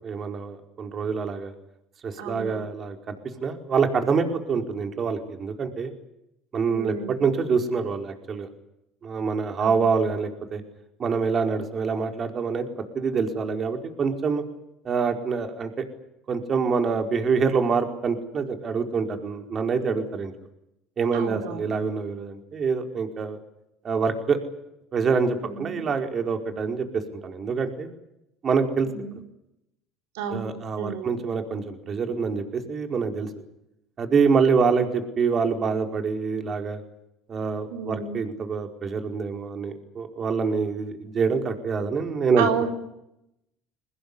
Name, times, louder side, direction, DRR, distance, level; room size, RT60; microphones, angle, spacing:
voice 1, 0.0-1.5 2.0-3.1 3.4-5.9 6.5-8.5 9.0-10.6 11.0-14.4 14.8-15.8 16.3-20.3 21.0-23.4 23.8-24.4 24.9-27.9 28.4-28.9 30.3-33.3 34.0-36.8 37.3-42.5, right 5 dB, 40° right, 5 dB, 4.8 m, -26 dB
voice 2, 2.2-2.6 6.7-7.3 9.6-9.9 21.1-21.9 25.4-25.9 28.9-29.2 30.1-31.2 37.7-38.2 42.4-42.7, right 7 dB, 90° right, 5 dB, 3.8 m, -32 dB
22.5 x 20.5 x 9.9 m, 0.84 s
supercardioid pair, 100°, 0 cm